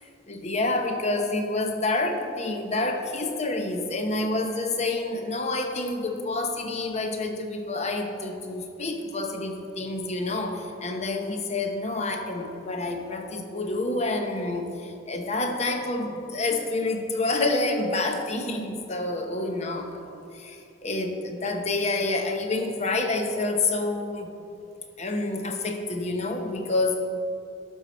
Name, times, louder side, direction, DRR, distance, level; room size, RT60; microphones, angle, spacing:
voice 1, 0.3-24.3 25.0-27.1, left 2 dB, 35° left, 4 dB, 0.8 m, -28 dB
12.0 x 6.4 x 4.3 m, 2.6 s
head